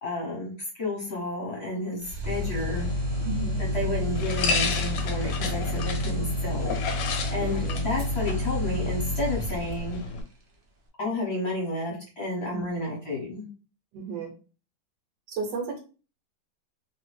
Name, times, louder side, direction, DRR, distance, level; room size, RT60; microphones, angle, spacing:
voice 1, 0.0-2.9 3.6-6.8 7.3-10.0 11.0-13.4, left 2 dB, 45° left, -3 dB, 1.0 m, -31 dB
sound 1, 2.0-10.0, left 1 dB, 60° right, 0.8 m, -30 dB
sound 2, 2.2-10.2, left 4 dB, 80° left, 1.2 m, -33 dB
voice 2, 3.2-3.6 7.4-7.8 12.5-12.8 13.9-14.3 15.3-15.8, right 4 dB, 75° right, 4 dB, 1.3 m, -34 dB
sound 3, 4.5-5.0 6.0-6.1 7.9-8.2 8.6-8.7 9.4-9.8, right 1 dB, 40° right, 0.3 m, -51 dB
2.7 x 2.6 x 3.1 m, 0.36 s
omnidirectional pair, 2.0 m